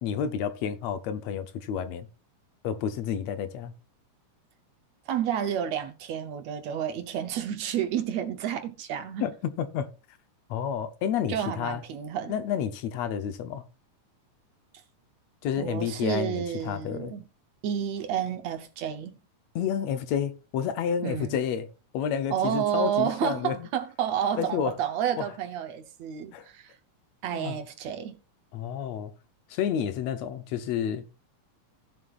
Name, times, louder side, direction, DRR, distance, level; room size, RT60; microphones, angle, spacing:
voice 1, 0.0-2.1 2.6-3.7 9.2-9.9 10.5-11.8 12.3-13.6 15.4-17.2 19.6-21.7 21.9-23.7 24.4-24.7 25.2-25.3 26.3-26.5 27.3-27.6 28.5-29.1 29.5-31.1, left 8 dB, 70° left, 1.8 m, -30 dB
voice 2, 5.1-9.3 11.3-12.3 15.6-17.3 17.6-19.2 21.0-21.4 22.3-26.8 27.2-28.2, right 9 dB, 70° right, 2.0 m, -30 dB
16.0 x 7.5 x 2.5 m
omnidirectional pair, 3.5 m